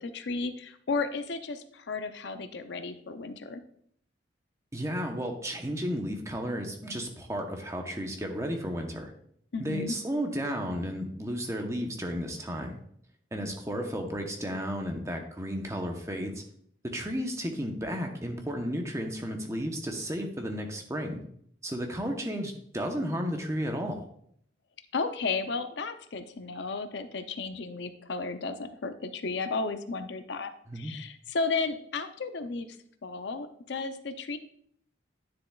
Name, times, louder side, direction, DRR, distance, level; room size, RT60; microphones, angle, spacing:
voice 1, 0.0-3.6 9.5-9.9 24.9-32.7 33.0-34.4, left 4 dB, 65° left, 9 dB, 0.5 m, -33 dB
voice 2, 4.7-9.1 9.6-12.8 13.3-16.4 16.8-21.2 21.6-24.0 30.7-30.9, equal, 15° right, 3 dB, 0.8 m, -33 dB
9.8 x 6.9 x 2.3 m, 0.66 s
head